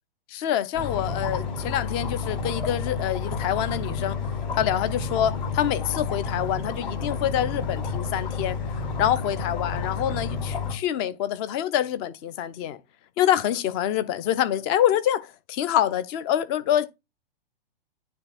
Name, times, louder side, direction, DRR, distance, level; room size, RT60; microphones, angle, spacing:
voice 1, 0.3-4.2 4.5-8.6 9.0-12.8 13.2-15.2 15.5-16.9, left 11 dB, 25° left, 0.6 m, -26 dB
sound 1, 0.7-10.7, left 5 dB, 50° left, 4.7 m, -30 dB
9.7 x 3.4 x 4.2 m
figure-of-eight pair, 110°, 30 cm